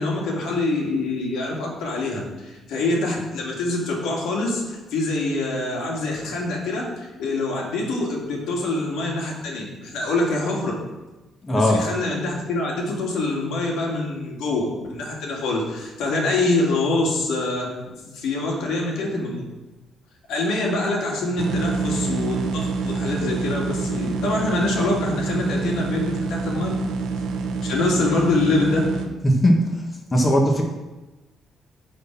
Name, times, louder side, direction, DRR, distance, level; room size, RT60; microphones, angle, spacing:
voice 1, 0.0-10.7 11.6-19.5 20.3-26.8 27.6-28.9, left 2 dB, 90° left, -2 dB, 2.2 m, -25 dB
voice 2, 11.4-11.8 29.2-29.6 30.1-30.6, equal, 25° left, 1 dB, 1.6 m, -17 dB
sound 1, 21.4-29.1, right 4 dB, 85° right, 1.0 m, -27 dB
9.6 x 4.3 x 6.1 m, 1.1 s
cardioid pair, 90°, 0 cm